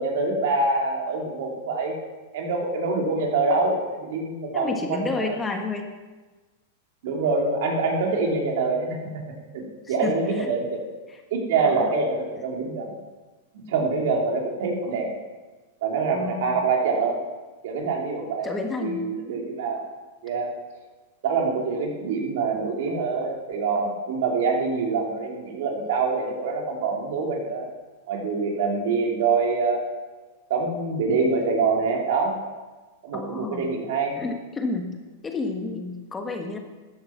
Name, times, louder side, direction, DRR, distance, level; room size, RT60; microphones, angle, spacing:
voice 1, 0.0-1.9 2.3-5.4 7.0-9.2 9.5-10.8 11.3-12.9 13.5-15.1 15.8-17.2 17.6-18.5 18.8-19.8 20.2-20.5 21.2-27.7 28.1-29.9 30.5-32.4 33.0-34.2, right 4 dB, 65° right, 0 dB, 3.2 m, -25 dB
voice 2, 4.5-5.9 10.0-10.5 11.1-11.2 11.6-11.9 16.1-16.6 18.4-19.1 33.1-33.6 34.2-34.9 35.2-36.6, left 3 dB, 15° left, 4 dB, 1.4 m, -30 dB
13.5 x 9.4 x 5.9 m, 1.2 s
supercardioid pair, 140°, 0 cm